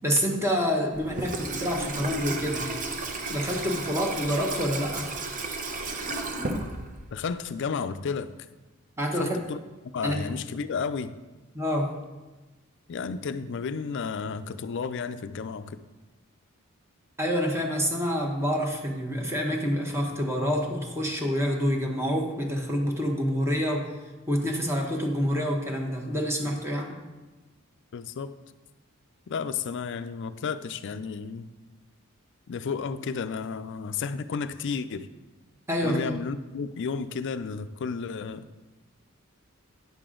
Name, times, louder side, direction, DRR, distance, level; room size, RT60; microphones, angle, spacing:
voice 1, 0.0-2.7 3.3-5.1 9.0-9.4 10.0-10.2 11.5-11.9 17.2-23.9 24.3-27.0 35.7-36.2, equal, 10° right, 1 dB, 0.9 m, -27 dB
Water tap faucet / Sink (filling or washing), 0.9-7.2, right 3 dB, 35° right, 0.8 m, -33 dB
voice 2, 7.1-8.3 9.1-9.6 9.9-11.2 12.9-15.8 27.9-28.3 29.3-31.4 32.5-35.1 35.8-38.4, left 5 dB, 55° left, 12 dB, 0.4 m, -32 dB
9.5 x 6.8 x 3.7 m, 1.1 s
head